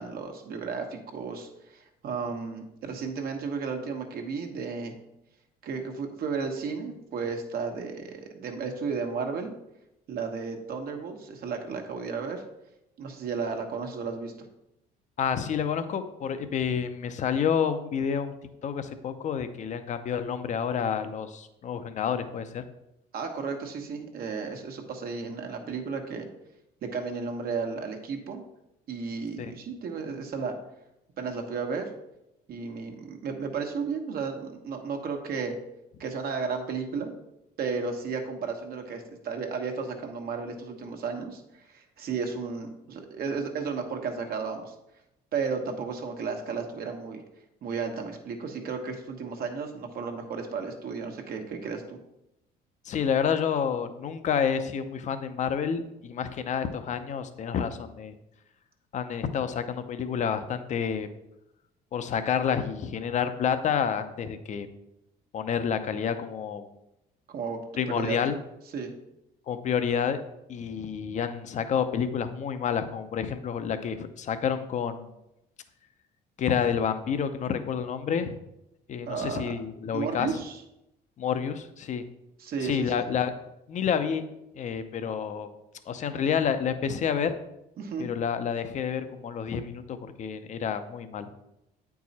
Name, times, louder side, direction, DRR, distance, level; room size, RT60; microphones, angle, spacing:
voice 1, 0.0-4.9 5.6-9.5 10.1-12.4 13.0-14.3 23.1-26.3 26.8-28.4 28.9-30.5 31.2-31.9 32.5-35.5 36.0-37.1 37.6-44.7 45.3-47.2 47.6-52.0 67.3-67.6 67.9-68.2 68.7-68.9 79.1-79.5 79.9-80.6 82.4-83.0 87.8-88.1, right 5 dB, 60° right, 4 dB, 1.2 m, -33 dB
voice 2, 15.2-18.4 18.6-22.7 29.4-29.5 52.8-58.1 58.9-61.1 61.9-64.7 65.3-66.7 67.8-68.4 69.5-70.2 70.5-75.1 76.4-78.4 78.9-80.3 81.2-82.0 82.6-83.3 83.7-84.2 84.5-85.5 85.9-87.3 88.0-91.3, left 7 dB, 45° left, 10 dB, 0.6 m, -29 dB
8.3 x 4.7 x 4.1 m, 0.87 s
cardioid pair, 110°, 17 cm